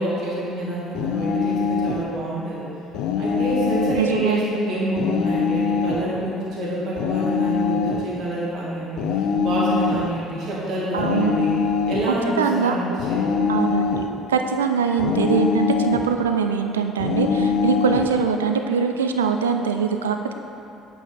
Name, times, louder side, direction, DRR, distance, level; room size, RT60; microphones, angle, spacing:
voice 1, 0.0-2.7 3.2-11.5 11.9-12.8 13.1-13.4, right 1 dB, 55° right, -6 dB, 1.8 m, -27 dB
sound 1, 0.9-2.1 2.9-4.1 5.0-6.1 7.0-8.1 9.0-10.1 11.0-12.1 13.0-14.1 15.0-16.1 17.0-18.1, left 5 dB, 65° left, 0.5 m, -23 dB
voice 2, 4.0-4.6 10.9-11.3 12.4-13.0 13.5-14.0 14.3-20.3, right 6 dB, 80° right, 5 dB, 0.3 m, -22 dB
8.2 x 6.2 x 3.8 m, 2.7 s
figure-of-eight pair, 55°, 0 cm